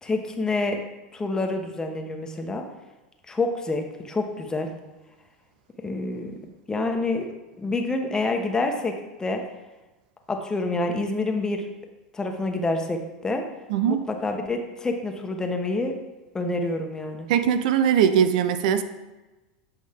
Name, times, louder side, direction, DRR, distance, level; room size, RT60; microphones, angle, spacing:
voice 1, 0.0-0.8 1.1-2.6 3.3-4.7 5.8-6.4 6.7-7.3 7.6-9.4 10.3-11.6 12.1-13.4 13.9-15.9 16.3-17.3, left 2 dB, 15° left, 4 dB, 1.1 m, -27 dB
voice 2, 13.7-14.0 17.3-18.8, right 8 dB, 65° right, 10 dB, 0.5 m, -20 dB
8.6 x 5.3 x 3.6 m, 1.1 s
hypercardioid pair, 90°, 5 cm